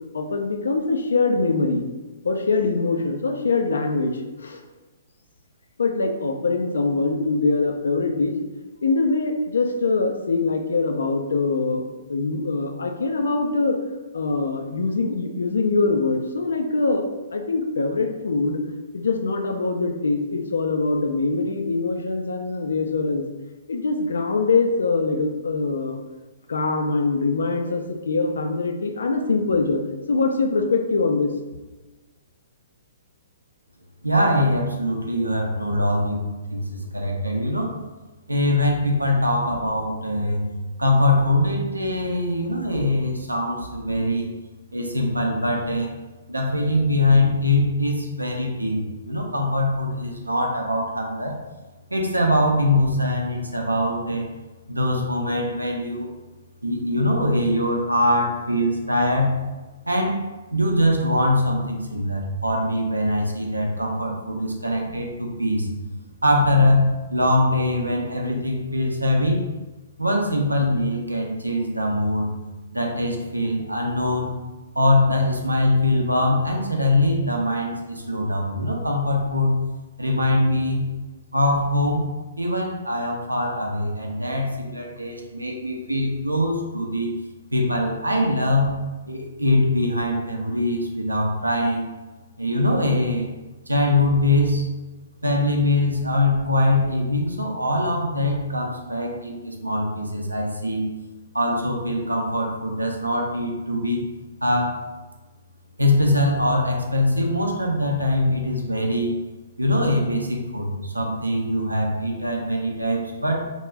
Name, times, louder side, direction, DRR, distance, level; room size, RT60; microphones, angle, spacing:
voice 1, 0.1-1.9 2.2-4.6 5.8-8.4 8.8-13.8 14.1-18.6 18.9-23.2 23.7-26.0 26.5-29.8 30.1-31.3, left 3 dB, 70° left, 4 dB, 0.3 m, -23 dB
voice 2, 34.0-36.2 36.5-37.8 38.3-40.4 40.8-44.3 44.7-45.9 46.3-51.3 51.9-54.3 54.7-56.1 56.6-59.3 59.9-60.2 60.5-65.7 66.2-66.8 67.1-69.4 70.0-72.3 72.7-74.3 74.7-79.6 80.0-80.9 81.3-82.0 82.4-87.1 87.5-88.8 89.1-91.9 92.4-93.3 93.7-94.6 95.2-100.9 101.3-104.0 104.4-104.8 105.8-109.2 109.6-113.4, left 1 dB, 85° right, 1 dB, 0.5 m, -22 dB
2.4 x 2.1 x 3.2 m, 1.2 s
figure-of-eight pair, 120°, 0 cm